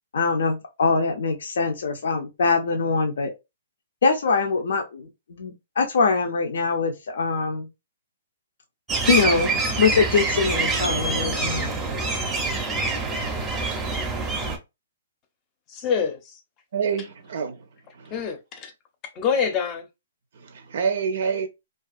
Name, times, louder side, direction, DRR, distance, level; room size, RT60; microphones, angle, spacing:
voice 1, 0.1-3.3 4.0-7.7 9.1-11.7, left 4 dB, 70° left, 0.5 m, -23 dB
sound 1, 8.9-14.6, right 3 dB, 15° right, 0.6 m, -25 dB
voice 2, 15.7-16.4 18.1-18.7 19.1-19.9, left 6 dB, 30° left, 0.6 m, -26 dB
voice 3, 16.7-17.6 17.9-18.1 20.3-21.5, right 6 dB, 65° right, 0.4 m, -27 dB
2.4 x 2.3 x 2.4 m
hypercardioid pair, 135°, 0 cm